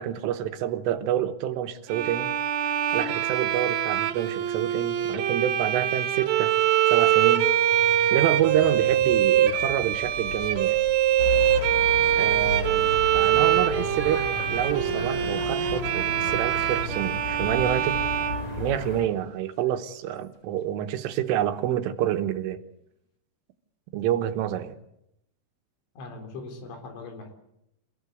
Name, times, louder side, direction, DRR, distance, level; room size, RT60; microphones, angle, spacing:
voice 1, 0.0-2.3 2.6-6.5 6.9-7.5 8.1-10.8 12.2-18.1 18.6-22.6 23.9-24.8, right 11 dB, 85° right, 8 dB, 3.8 m, -28 dB
Bowed string instrument, 1.9-19.1, right 11 dB, 70° right, 3.5 m, -24 dB
sound 1, 7.7-20.1, left 4 dB, 50° left, 2.2 m, -44 dB
sound 2, 11.2-19.0, left 3 dB, 25° left, 3.9 m, -34 dB
voice 2, 26.0-27.3, left 3 dB, 75° left, 5 dB, 6.3 m, -40 dB
28.5 x 15.5 x 8.3 m, 0.81 s
omnidirectional pair, 5.6 m